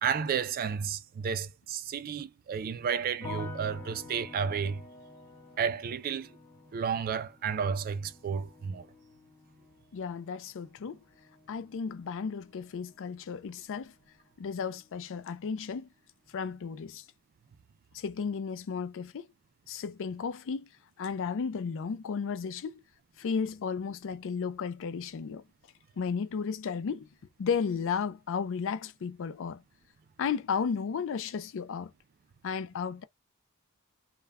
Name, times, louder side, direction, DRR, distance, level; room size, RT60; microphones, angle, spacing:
voice 1, 0.0-4.8 5.6-6.3 6.7-8.9, right 6 dB, 40° right, 0.3 m, -32 dB
sound 1, 3.2-14.3 14.6-15.3, left 3 dB, 10° left, 0.6 m, -50 dB
voice 2, 9.9-11.0 11.5-13.9 14.4-15.9 16.3-17.0 17.9-19.3 19.7-20.7 21.0-22.8 23.2-25.4 26.0-27.1 27.4-29.6 30.2-31.9 32.4-33.0, left 6 dB, 60° left, 0.4 m, -34 dB
2.2 x 2.1 x 3.4 m
head